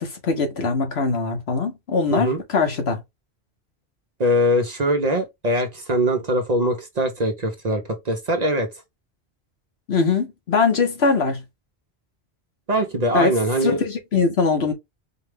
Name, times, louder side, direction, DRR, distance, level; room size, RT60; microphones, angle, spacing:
voice 1, 0.0-3.0 9.9-11.4 13.1-14.7, left 4 dB, 70° left, 1.4 m, -22 dB
voice 2, 2.1-2.4 4.2-8.7 12.7-13.8, equal, 45° right, 0.7 m, -22 dB
4.5 x 2.2 x 3.3 m
omnidirectional pair, 1.1 m